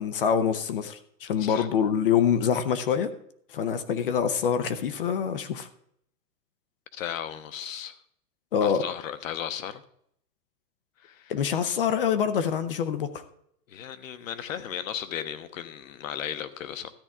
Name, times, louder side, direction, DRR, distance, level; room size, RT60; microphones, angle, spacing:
voice 1, 0.0-3.1 3.5-5.7 8.5-8.8 11.3-13.2, left 7 dB, 35° left, 0.6 m, -25 dB
voice 2, 6.9-8.0 8.6-9.8 11.0-11.3 13.7-16.9, left 9 dB, 55° left, 1.0 m, -35 dB
13.0 x 9.7 x 3.6 m
hypercardioid pair, 170°, 49 cm